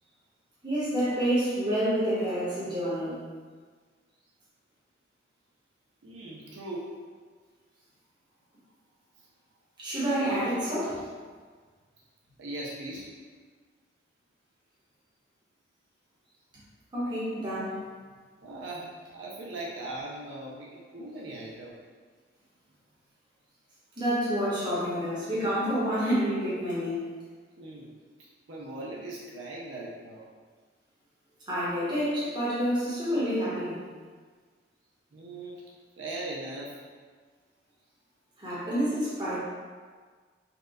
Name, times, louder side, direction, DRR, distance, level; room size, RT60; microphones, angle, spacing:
voice 1, 0.6-3.3 9.8-11.1 16.9-17.8 24.0-27.1 31.5-33.9 38.4-39.4, equal, 25° right, -10 dB, 1.0 m, -28 dB
voice 2, 6.0-7.0 12.4-13.1 18.4-21.8 27.6-27.9 28.2-30.3 35.1-35.6 36.0-36.8, right 2 dB, 80° right, -5 dB, 0.6 m, -39 dB
4.3 x 2.2 x 2.4 m, 1.5 s
head